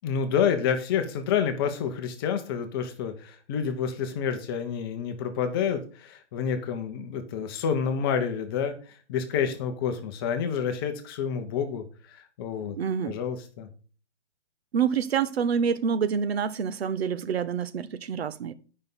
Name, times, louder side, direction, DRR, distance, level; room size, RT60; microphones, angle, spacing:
voice 1, 0.0-8.7 9.1-11.8 12.1-12.8 13.0-13.7, left 7 dB, 20° left, 0.8 m, -28 dB
voice 2, 12.8-13.2 14.7-18.5, right 7 dB, 60° right, 0.8 m, -27 dB
7.9 x 5.5 x 5.4 m
hypercardioid pair, 150°, 34 cm